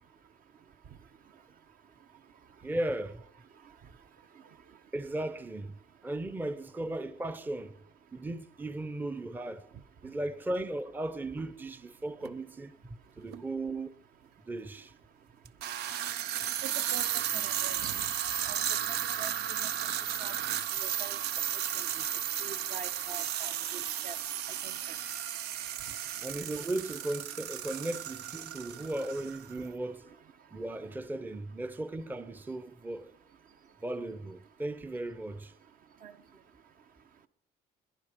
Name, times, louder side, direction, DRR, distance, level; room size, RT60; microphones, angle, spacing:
voice 1, 2.6-3.2 4.9-7.8 8.1-9.7 10.0-13.9 14.5-14.9 26.2-30.1 30.5-33.1 33.8-35.5, right 1 dB, 10° right, 0.6 m, -36 dB
sound 1, 12.2-12.3 13.3-13.4 15.4-29.6, right 10 dB, 80° right, 0.7 m, -34 dB
voice 2, 16.6-17.1 17.3-17.9 18.4-18.6 18.9-19.7 20.2-20.3 20.8-21.2 21.8-21.9 22.4-24.1 24.6-24.7 36.0-36.1, right 7 dB, 55° right, 1.0 m, -44 dB
21.5 x 10.5 x 5.1 m
cardioid pair, 110°, 17 cm